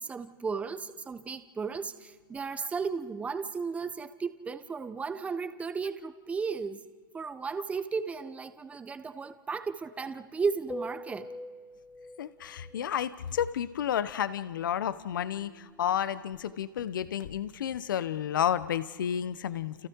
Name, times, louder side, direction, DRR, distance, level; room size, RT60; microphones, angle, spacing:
voice 1, 0.0-6.8 7.1-11.3, right 5 dB, 10° right, 1.2 m, -34 dB
sound 1, 10.7-12.9 15.1-16.7, left 1 dB, 10° left, 1.4 m, -44 dB
voice 2, 12.2-19.9, left 9 dB, 75° left, 1.1 m, -31 dB
30.0 x 29.5 x 4.8 m
hypercardioid pair, 125°, 11 cm